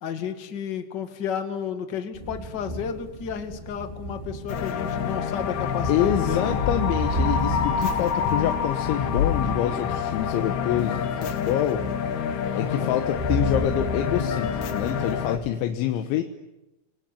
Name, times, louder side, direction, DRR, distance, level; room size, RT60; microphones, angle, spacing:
voice 1, 0.0-6.6 12.4-12.9, left 7 dB, 40° left, 7 dB, 1.5 m, -32 dB
sound 1, 2.1-15.5, right 1 dB, 15° right, 3.6 m, -33 dB
sound 2, 4.5-15.4, left 7 dB, 60° left, 2.1 m, -27 dB
voice 2, 5.9-11.8 12.5-16.2, left 11 dB, 85° left, 6 dB, 3.6 m, -26 dB
27.0 x 21.0 x 10.0 m, 0.98 s
omnidirectional pair, 5.3 m